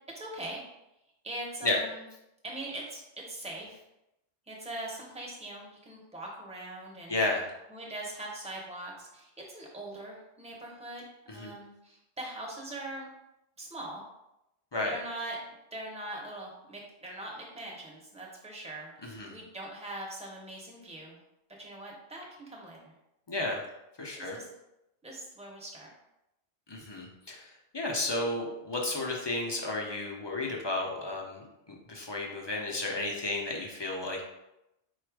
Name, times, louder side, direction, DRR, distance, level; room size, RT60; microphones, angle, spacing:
voice 1, 0.1-0.6 1.2-2.0 2.4-3.8 4.5-7.2 7.7-11.1 11.3-13.1 13.6-14.0 14.7-15.4 15.7-21.2 21.6-22.9 24.2-24.5 25.0-25.9, right 1 dB, 5° right, -2 dB, 0.7 m, -41 dB
voice 2, 7.1-7.5 11.3-11.5 14.7-14.9 19.0-19.3 23.3-23.6 24.0-24.4 26.7-34.2, left 2 dB, 30° left, -1 dB, 0.5 m, -33 dB
4.2 x 2.4 x 4.6 m, 0.89 s
omnidirectional pair, 1.1 m